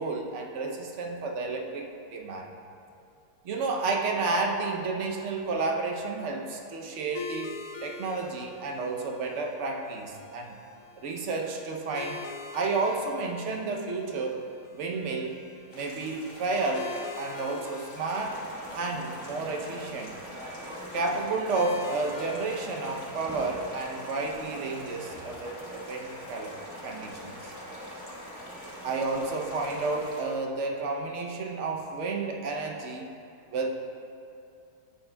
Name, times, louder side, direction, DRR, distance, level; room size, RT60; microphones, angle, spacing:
voice 1, 0.0-2.5 3.4-10.6 11.0-12.2 12.5-14.4 14.7-15.4 15.7-18.5 18.7-20.1 20.9-26.5 26.8-27.5 28.8-33.1 33.5-33.7, right 3 dB, 60° right, 2 dB, 0.8 m, -31 dB
sound 1, 7.1-26.3, left 5 dB, 70° left, 0.8 m, -46 dB
sound 2, 15.7-30.2, left 1 dB, 35° left, 1.6 m, -49 dB
sound 3, 18.2-30.1, equal, 15° right, 0.7 m, -43 dB
11.0 x 8.4 x 2.2 m, 2.6 s
omnidirectional pair, 1.8 m